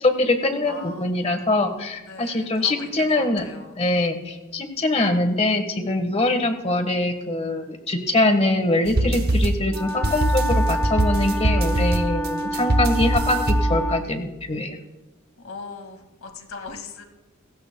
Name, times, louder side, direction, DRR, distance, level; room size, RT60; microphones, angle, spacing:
voice 1, 0.0-3.4 3.7-14.8, left 2 dB, 30° left, 6 dB, 1.4 m, -23 dB
voice 2, 0.6-1.1 2.1-3.8 15.4-17.1, left 4 dB, 75° left, 5 dB, 2.0 m, -39 dB
sound 1, 8.9-14.1, right 1 dB, 50° right, 0.9 m, -23 dB
Wind instrument woodwind instrument, 9.7-14.1, equal, 10° left, 0.7 m, -29 dB
28.0 x 15.0 x 2.3 m, 1.2 s
head